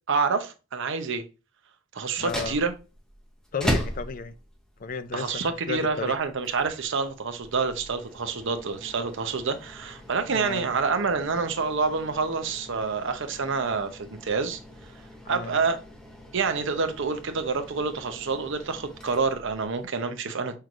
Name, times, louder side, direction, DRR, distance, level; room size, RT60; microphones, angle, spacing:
voice 1, 0.1-1.2 1.9-2.7 5.1-14.6 15.3-15.8 16.3-20.6, right 4 dB, 60° right, 0.7 m, -27 dB
sound 1, 2.1-19.9, equal, 5° left, 0.7 m, -39 dB
voice 2, 2.2-2.6 3.5-4.3 4.8-6.2 10.3-10.7 15.3-15.6, left 5 dB, 40° left, 0.4 m, -33 dB
5.6 x 3.2 x 2.4 m
head